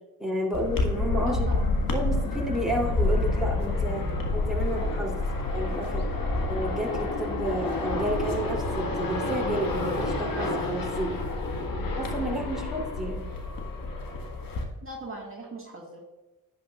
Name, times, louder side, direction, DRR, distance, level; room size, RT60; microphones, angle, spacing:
voice 1, 0.2-1.5 1.9-5.2 5.5-6.1 6.4-11.2 11.9-13.3, right 1 dB, ahead, -2 dB, 2.8 m, -31 dB
sound 1, 0.5-14.6, left 2 dB, 60° left, 1.7 m, -28 dB
voice 2, 1.2-1.8 14.8-16.0, right 2 dB, 35° right, -1 dB, 1.9 m, -39 dB
10.5 x 8.8 x 2.4 m, 1.1 s
supercardioid pair, 45°, 38 cm